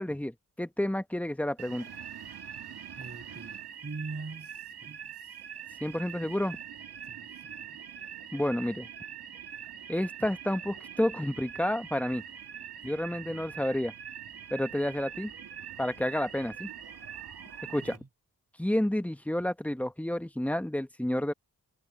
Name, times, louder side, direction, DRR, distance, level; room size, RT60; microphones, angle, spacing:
voice 1, 0.0-1.9 5.8-6.6 8.3-8.9 9.9-12.2 12.8-13.9 14.5-15.3 15.8-16.7 17.7-18.0 18.6-21.3, left 1 dB, 5° left, 1.1 m, -30 dB
sound 1, 1.6-18.0, right 8 dB, 85° right, 2.1 m, -44 dB
voice 2, 2.9-5.3 7.1-7.8 13.1-13.6 17.8-18.1, right 3 dB, 40° right, 7.1 m, -44 dB
cardioid pair, 65°, 38 cm